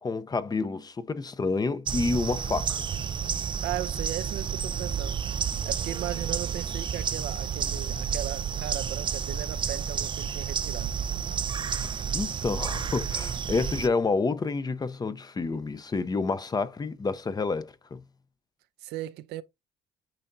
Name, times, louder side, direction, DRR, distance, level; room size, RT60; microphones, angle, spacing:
voice 1, 0.0-2.8 11.7-18.0, left 4 dB, 25° left, 0.6 m, -29 dB
sound 1, 1.9-13.9, right 7 dB, 30° right, 0.4 m, -31 dB
voice 2, 3.6-5.2 5.6-10.9 18.8-19.4, right 15 dB, 85° right, 0.6 m, -37 dB
9.0 x 4.3 x 2.7 m
cardioid pair, 110°, 17 cm